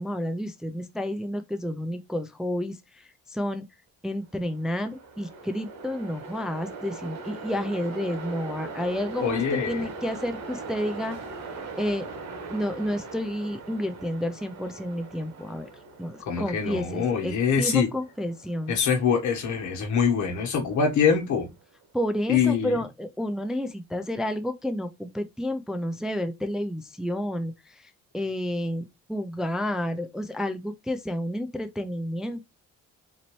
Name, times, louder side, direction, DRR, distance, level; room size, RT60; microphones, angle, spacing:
voice 1, 0.0-3.6 4.0-11.2 11.8-12.1 12.5-15.7 16.0-18.7 21.9-32.5, left 1 dB, ahead, 0.4 m, -30 dB
Train, 4.4-21.6, right 4 dB, 60° right, 1.4 m, -41 dB
voice 2, 9.2-9.9 16.3-17.9 18.7-21.5 22.3-22.8, left 6 dB, 70° left, 1.3 m, -24 dB
4.0 x 2.8 x 3.0 m
cardioid pair, 90°, 30 cm